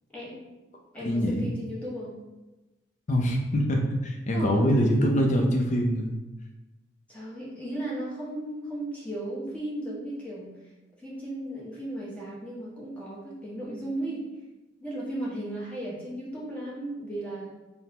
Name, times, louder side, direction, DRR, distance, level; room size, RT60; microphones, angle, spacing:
voice 1, 0.1-0.5 0.9-2.2 4.3-4.6 7.1-10.5 11.0-14.2 14.8-17.5, right 1 dB, 5° left, -7 dB, 0.7 m, -35 dB
voice 2, 1.0-1.5 3.1-6.1, equal, 40° left, 2 dB, 0.4 m, -24 dB
3.2 x 2.0 x 2.8 m, 1.1 s
head